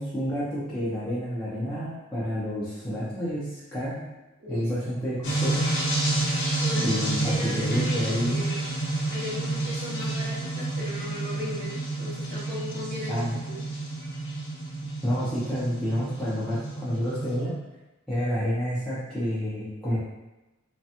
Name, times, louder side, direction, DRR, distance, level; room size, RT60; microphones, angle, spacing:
voice 1, 0.0-4.0 4.5-5.7 6.8-8.4 13.1-13.4 15.0-17.5 18.1-20.0, equal, 5° left, -13 dB, 0.6 m, -29 dB
voice 2, 4.4-4.7 6.6-8.7 9.0-13.6, left 1 dB, 50° right, -6 dB, 0.9 m, -37 dB
sound 1, 5.2-17.4, right 2 dB, 55° left, 0.8 m, -29 dB
3.2 x 2.2 x 2.8 m, 1.0 s
head